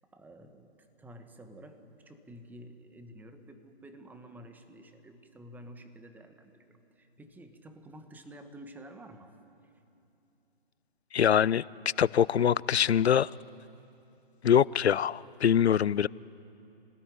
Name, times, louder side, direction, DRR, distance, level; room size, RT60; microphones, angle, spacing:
voice 1, 0.1-0.7 1.0-9.3 9.6-9.7, right 1 dB, 5° right, 1.3 m, -50 dB
voice 2, 11.1-11.6 12.0-13.3 14.4-16.1, left 9 dB, 75° left, 0.6 m, -24 dB
26.5 x 19.0 x 10.0 m
figure-of-eight pair, 140°, 32 cm